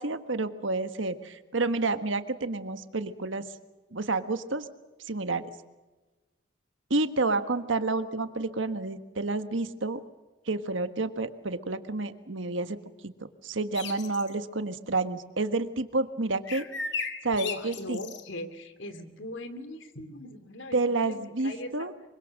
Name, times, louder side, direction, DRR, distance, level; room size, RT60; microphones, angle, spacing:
voice 1, 0.0-3.4 3.9-4.6 5.1-5.4 6.9-10.0 10.5-12.8 13.0-13.1 13.4-16.7 17.2-18.0 20.7-21.9, right 3 dB, 80° right, 10 dB, 1.5 m, -29 dB
sound 1, 13.7-14.3 16.5-18.2, left 5 dB, 65° left, 2.0 m, -35 dB
voice 2, 17.4-21.2 21.4-21.9, left 1 dB, 80° left, 10 dB, 2.7 m, -39 dB
25.0 x 24.0 x 6.5 m, 1.2 s
head